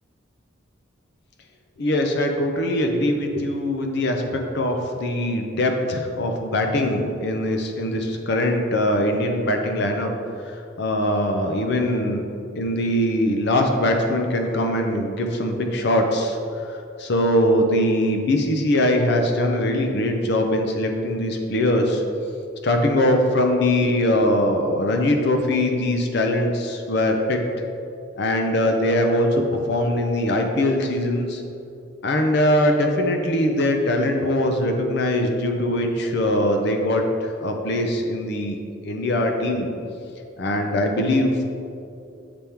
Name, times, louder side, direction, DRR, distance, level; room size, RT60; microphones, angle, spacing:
voice 1, 1.8-10.1 10.4-12.2 12.6-16.4 16.7-22.0 22.6-27.4 28.2-31.4 32.0-38.6 38.8-39.7 40.4-41.3, left 1 dB, 55° left, 4 dB, 0.5 m, -22 dB
6.8 x 3.5 x 4.4 m, 2.6 s
head